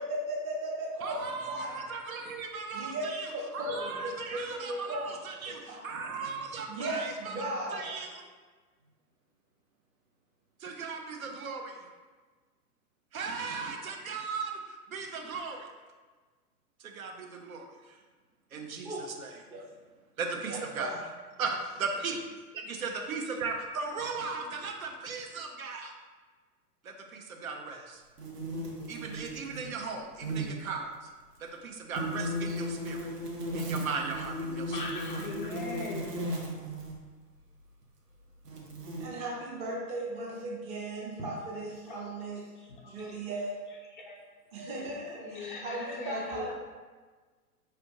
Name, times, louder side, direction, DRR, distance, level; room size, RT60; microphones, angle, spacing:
voice 1, 0.0-1.7 2.7-5.9 6.7-7.9 18.8-19.1 19.5-19.7 20.5-21.0 39.0-42.5 42.8-43.7 44.5-46.5, right 1 dB, 15° right, -4 dB, 0.6 m, -37 dB
voice 2, 1.0-8.3 10.6-11.9 13.1-15.7 16.8-18.0 18.5-19.4 20.2-21.0 21.4-22.2 22.5-25.9 26.8-28.0 28.9-31.1 31.4-33.1 33.5-34.9, right 4 dB, 60° right, 2 dB, 0.8 m, -37 dB
sound 1, 28.2-29.7 30.0-30.5 31.9-37.0 37.8-37.9 38.4-39.1, equal, 75° right, 1.0 m, -36 dB
voice 3, 34.7-36.1 41.9-42.0 43.0-43.1 43.7-44.2 45.2-46.5, left 3 dB, 35° left, -1 dB, 0.4 m, -39 dB
4.6 x 3.3 x 2.9 m, 1.4 s
figure-of-eight pair, 110°, 47 cm